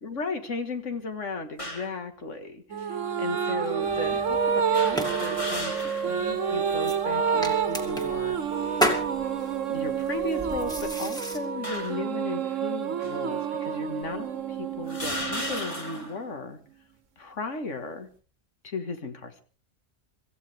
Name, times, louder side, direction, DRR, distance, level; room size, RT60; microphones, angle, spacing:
voice 1, 0.0-9.0 9.7-14.3 14.6-16.6 17.2-18.1 18.6-19.4, left 3 dB, 75° left, 7 dB, 2.1 m, -36 dB
sound 1, 1.6-2.0 2.8-2.9 4.7-6.2 6.6-6.7 7.9-8.3 9.0-9.3 10.2-11.0 11.6-12.1 13.0-13.1 14.0-14.1 14.9-16.2, left 1 dB, 25° left, 2.8 m, -36 dB
sound 2, 2.7-16.3, right 7 dB, 80° right, 1.4 m, -29 dB
sound 3, 3.8-11.4, equal, 5° left, 2.7 m, -34 dB
26.0 x 15.0 x 3.4 m, 0.39 s
omnidirectional pair, 1.3 m